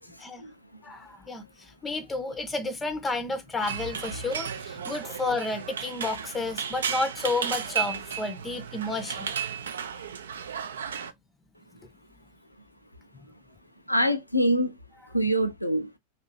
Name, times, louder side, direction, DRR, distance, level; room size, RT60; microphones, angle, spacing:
voice 1, 0.0-0.9 13.9-14.8 15.1-16.0, equal, 85° left, 0.4 m, -26 dB
voice 2, 0.8-9.3 13.1-13.3, left 3 dB, 15° left, 0.5 m, -31 dB
sound 1, 3.6-11.1, right 7 dB, 65° right, 0.3 m, -34 dB
2.6 x 2.4 x 3.0 m
figure-of-eight pair, 90°, 0 cm